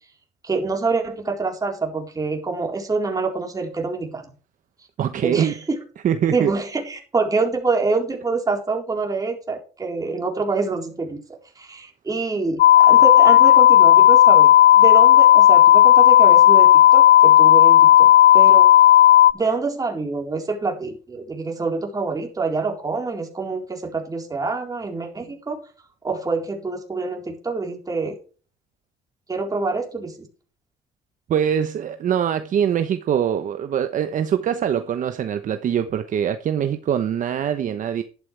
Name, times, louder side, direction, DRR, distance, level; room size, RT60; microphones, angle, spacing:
voice 1, 0.4-4.3 5.2-5.8 6.3-11.2 11.6-18.1 18.3-18.7 19.3-25.6 26.0-28.2 29.3-30.3, right 3 dB, 20° right, 4.2 m, -26 dB
voice 2, 5.0-5.6 6.0-6.5 31.3-38.0, right 9 dB, 50° right, 1.0 m, -23 dB
sound 1, 12.6-19.3, left 12 dB, 65° left, 0.5 m, -11 dB
12.0 x 11.5 x 3.4 m
cardioid pair, 110°, 17 cm